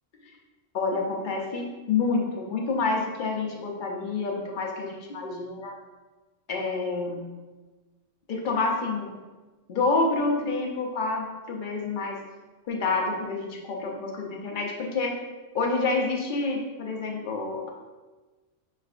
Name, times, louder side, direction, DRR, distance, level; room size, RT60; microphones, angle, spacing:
voice 1, 0.7-5.7 6.5-7.2 8.3-9.1 9.7-12.2 12.7-15.1 15.5-17.7, left 3 dB, 50° left, 0 dB, 0.7 m, -28 dB
5.7 x 3.2 x 2.4 m, 1.2 s
omnidirectional pair, 1.3 m